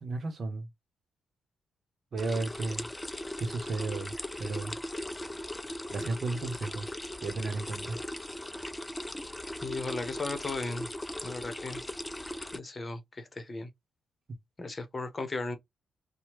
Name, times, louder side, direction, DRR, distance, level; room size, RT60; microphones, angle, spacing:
voice 1, 0.0-0.7 2.1-2.9 3.4-4.8 5.9-6.9 7.2-8.0, right 3 dB, 60° right, 0.8 m, -34 dB
sound 1, 2.2-12.6, left 1 dB, 15° left, 0.4 m, -39 dB
voice 2, 9.6-10.9 11.2-11.8 12.5-13.7 14.6-15.6, left 3 dB, 40° left, 0.9 m, -36 dB
2.9 x 2.2 x 2.9 m
hypercardioid pair, 45°, 0 cm